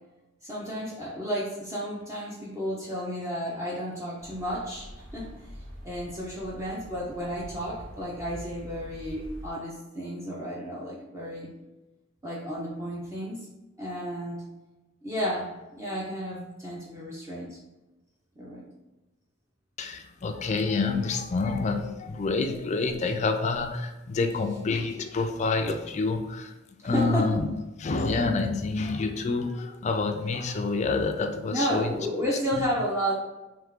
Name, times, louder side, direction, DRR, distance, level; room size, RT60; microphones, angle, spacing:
voice 1, 0.4-5.3 5.8-11.5 12.2-13.5 13.8-14.4 15.0-17.6 18.4-18.7 24.2-24.6 26.9-27.4 31.5-33.1, equal, 15° right, -5 dB, 0.6 m, -32 dB
sound 1, 4.2-9.5, equal, 70° right, 1.1 m, -45 dB
voice 2, 19.8-26.5 26.8-27.5 27.8-32.2 32.6-32.7, left 3 dB, 35° left, 5 dB, 0.4 m, -28 dB
3.5 x 3.2 x 3.6 m, 1.1 s
head